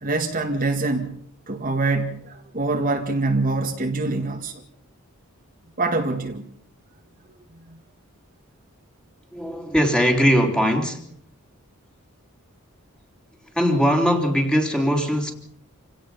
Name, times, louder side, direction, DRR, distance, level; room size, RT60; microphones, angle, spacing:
voice 1, 0.0-4.6 5.8-6.4 7.7-7.8, right 3 dB, 40° right, 2.0 m, -25 dB
voice 2, 9.3-11.0 13.5-15.3, equal, 5° left, 3.5 m, -20 dB
28.5 x 17.5 x 5.7 m
head